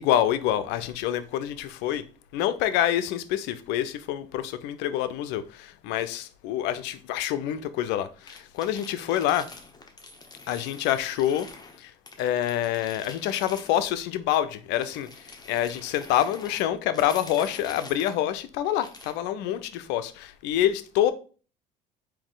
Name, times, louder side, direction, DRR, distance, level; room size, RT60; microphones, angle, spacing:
voice 1, 0.0-2.0 2.3-9.5 10.5-11.5 11.8-21.1, left 11 dB, 70° left, 0.5 m, -27 dB
sound 1, 8.2-11.8 12.1-14.1 14.7-18.2 18.6-19.2, left 3 dB, 20° left, 0.9 m, -45 dB
3.6 x 2.7 x 3.9 m
supercardioid pair, 75°, 18 cm